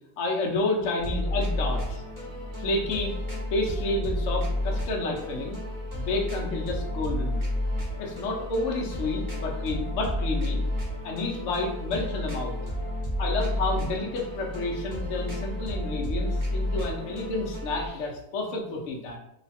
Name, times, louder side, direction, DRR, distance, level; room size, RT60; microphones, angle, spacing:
voice 1, 0.2-2.0 2.6-3.1 3.5-5.6 5.9-7.4 8.0-10.6 11.0-12.6 13.2-19.2, left 2 dB, 55° left, 0 dB, 0.9 m, -30 dB
sound 1, 1.0-17.9, left 1 dB, 15° right, 0.7 m, -31 dB
3.1 x 2.2 x 4.1 m, 0.81 s
omnidirectional pair, 1.9 m